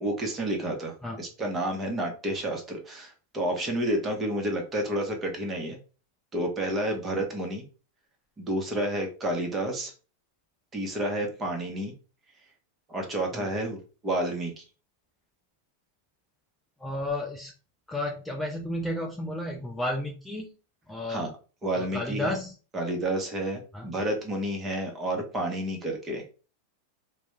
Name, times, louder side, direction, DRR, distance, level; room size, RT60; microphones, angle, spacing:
voice 1, 0.0-5.8 6.3-7.6 8.4-9.9 10.7-11.9 12.9-14.6 21.1-21.3 21.6-22.4 22.7-26.3, right 1 dB, 20° right, 2 dB, 0.8 m, -30 dB
voice 2, 16.8-17.5 17.9-20.5 20.9-21.3 21.8-22.5 23.7-23.9, left 1 dB, 5° left, 1 dB, 0.4 m, -32 dB
2.3 x 2.1 x 3.0 m, 0.35 s
supercardioid pair, 130°, 0 cm